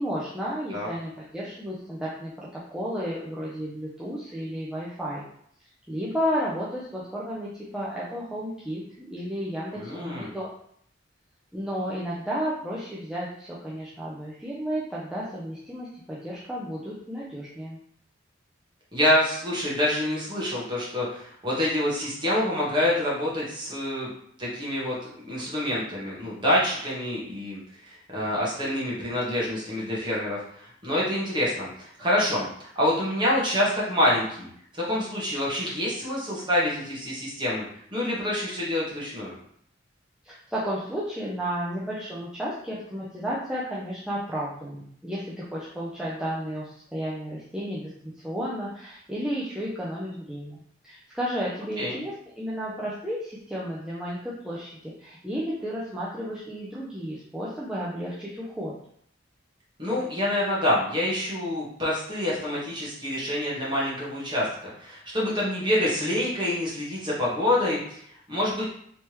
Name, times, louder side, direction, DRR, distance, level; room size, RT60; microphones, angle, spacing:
voice 1, 0.0-5.2 5.9-10.5 11.5-17.8 40.2-58.7, equal, 5° right, -7 dB, 0.4 m, -33 dB
voice 2, 9.7-10.3 18.9-24.1 24.4-25.0 25.3-34.5 34.7-37.6 37.9-39.3 51.8-52.0 59.8-64.5 64.8-68.7, left 1 dB, 25° right, -6 dB, 1.2 m, -27 dB
3.3 x 3.1 x 2.9 m, 0.67 s
head